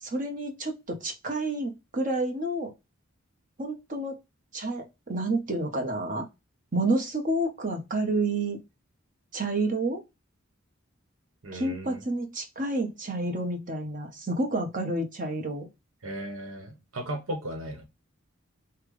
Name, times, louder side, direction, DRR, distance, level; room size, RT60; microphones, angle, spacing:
voice 1, 0.0-2.7 3.6-4.2 4.5-6.3 6.7-8.6 9.3-10.0 11.5-15.7, right 2 dB, 40° right, 1.1 m, -29 dB
voice 2, 11.4-12.0 16.0-17.8, right 1 dB, 85° right, 1.2 m, -36 dB
5.8 x 2.3 x 3.1 m
head